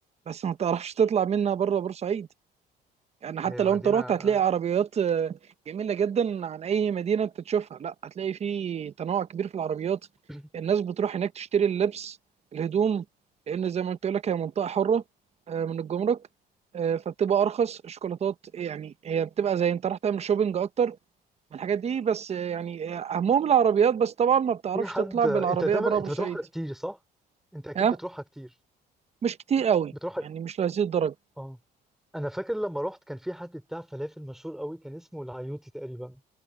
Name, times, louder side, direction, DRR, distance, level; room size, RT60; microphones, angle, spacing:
voice 1, 0.3-2.3 3.2-5.4 5.7-10.0 10.5-12.2 12.5-13.0 13.5-15.0 15.5-16.2 16.7-21.0 21.5-26.4 27.7-28.0 29.2-29.9 30.2-31.1, right 8 dB, 40° right, 1.0 m, -26 dB
voice 2, 3.4-4.4 10.3-10.4 24.7-27.0 27.5-28.5 30.0-30.5 31.4-31.6 32.1-36.2, equal, ahead, 3.2 m, -34 dB
cardioid pair, 110°, 17 cm